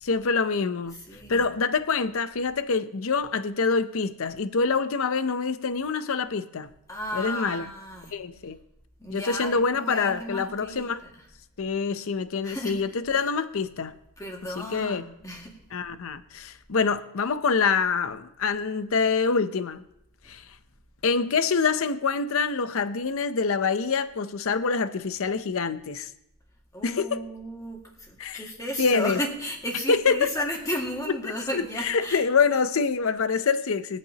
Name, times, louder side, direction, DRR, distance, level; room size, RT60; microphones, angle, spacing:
voice 1, 0.0-1.0 1.3-6.7 7.1-7.7 8.1-8.6 9.1-11.0 11.6-13.9 14.6-15.0 15.7-19.8 20.3-20.5 21.0-26.1 26.8-27.2 28.2-28.4 28.8-29.2 29.9-30.3 31.2-34.0, left 5 dB, 65° left, 0.6 m, -26 dB
voice 2, 1.1-1.4 6.9-8.1 9.0-10.9 12.4-12.8 14.2-15.6 26.7-32.2, equal, 15° left, 1.9 m, -34 dB
22.5 x 8.4 x 2.9 m
head